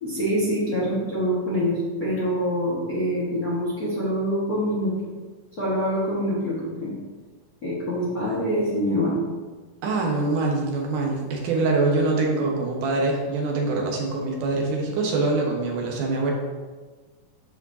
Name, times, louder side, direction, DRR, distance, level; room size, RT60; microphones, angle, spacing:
voice 1, 0.0-4.9 5.6-6.9 7.6-9.2, equal, 45° left, -7 dB, 1.2 m, -25 dB
voice 2, 9.8-16.3, right 3 dB, 80° right, 0 dB, 2.7 m, -24 dB
12.0 x 5.1 x 2.7 m, 1.4 s
omnidirectional pair, 3.7 m